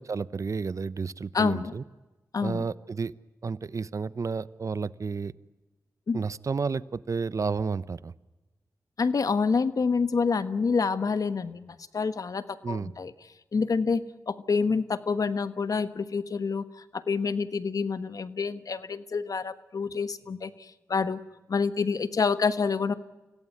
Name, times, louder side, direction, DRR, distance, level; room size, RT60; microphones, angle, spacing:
voice 1, 0.0-1.8 2.4-3.1 3.4-5.3 6.1-8.1 12.6-12.9, right 5 dB, 55° right, 18 dB, 0.8 m, -31 dB
voice 2, 1.3-1.7 2.3-2.6 6.1-6.2 9.0-13.1 13.5-21.2 21.5-22.9, left 5 dB, 65° left, 13 dB, 1.3 m, -27 dB
25.5 x 17.0 x 9.6 m, 1.1 s
cardioid pair, 45°, 6 cm